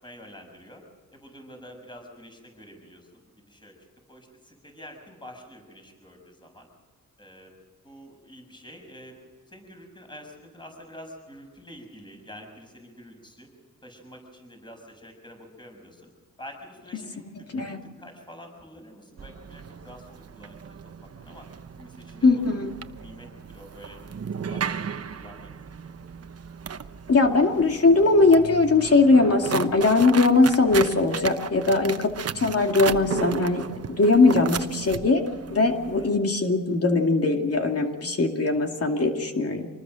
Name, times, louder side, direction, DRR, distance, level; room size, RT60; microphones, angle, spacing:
voice 1, 0.0-0.8 1.1-3.7 4.1-6.7 7.2-7.5 7.8-9.2 9.5-13.5 13.8-16.1 16.4-17.5 18.0-21.5 21.8-22.3 23.0-24.0 24.4-25.9 31.6-31.9 35.8-36.2, equal, 15° left, 3 dB, 6.4 m, -47 dB
sound 1, 19.2-36.1, right 7 dB, 45° right, 1.1 m, -35 dB
voice 2, 22.2-22.7 27.1-35.2 35.5-39.7, left 3 dB, 45° left, 3 dB, 2.5 m, -20 dB
26.5 x 20.0 x 6.4 m, 1.4 s
cardioid pair, 80°, 33 cm